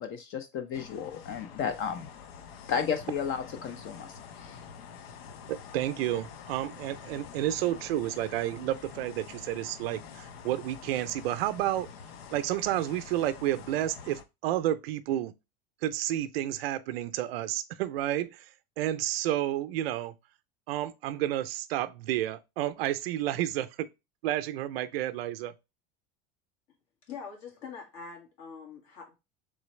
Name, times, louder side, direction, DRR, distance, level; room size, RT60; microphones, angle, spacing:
voice 1, 0.0-2.1 2.7-4.6, left 7 dB, 45° left, 0.6 m, -33 dB
sound 1, 0.7-14.2, left 7 dB, 85° left, 0.7 m, -47 dB
voice 2, 5.5-11.9 12.3-15.3 15.8-18.5 18.8-20.1 20.7-23.9 24.2-25.5, right 13 dB, 85° right, 0.5 m, -31 dB
voice 3, 27.1-29.1, left 5 dB, 60° left, 2.1 m, -44 dB
3.8 x 3.3 x 3.1 m
supercardioid pair, 105°, 29 cm